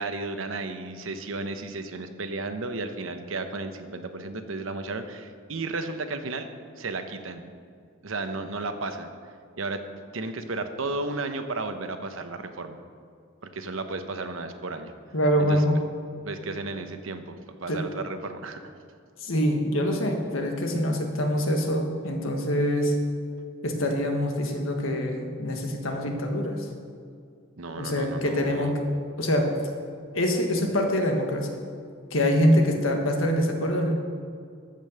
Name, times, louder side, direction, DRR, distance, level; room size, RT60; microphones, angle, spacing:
voice 1, 0.0-6.5 6.8-7.5 8.0-9.1 9.6-9.8 10.1-12.8 13.5-14.9 15.4-15.6 16.2-18.7 27.6-28.8, right 3 dB, 80° right, 8 dB, 0.9 m, -33 dB
voice 2, 15.1-15.7 17.7-17.8 19.2-22.9 23.6-26.6 27.8-29.5 30.1-31.6 32.1-33.9, equal, 85° left, 3 dB, 1.6 m, -25 dB
14.0 x 5.4 x 6.7 m, 2.3 s
head